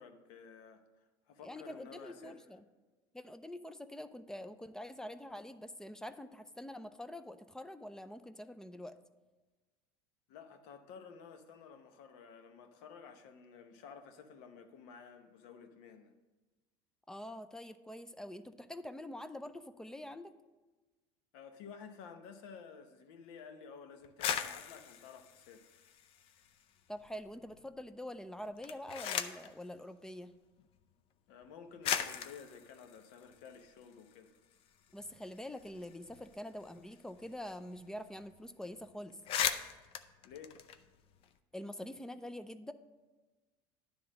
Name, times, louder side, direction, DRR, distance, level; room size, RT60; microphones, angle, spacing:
voice 1, 0.0-2.4 10.3-16.1 21.3-25.8 31.3-34.3 40.2-40.6, left 6 dB, 70° left, 0.9 m, -53 dB
voice 2, 1.4-2.6 3.1-9.0 17.1-20.3 26.9-30.3 34.9-39.2 41.5-42.7, left 1 dB, 5° left, 0.4 m, -45 dB
sound 1, 24.0-26.6 27.0-27.7 28.5-29.5 30.6-30.7 31.4-31.5 31.8-34.1 34.5-34.6 34.9-37.5 37.7-37.9 38.2-38.4 38.8-38.9 39.1-41.3, left 9 dB, 50° left, 0.5 m, -39 dB
10.0 x 3.5 x 6.2 m
supercardioid pair, 105°, 12 cm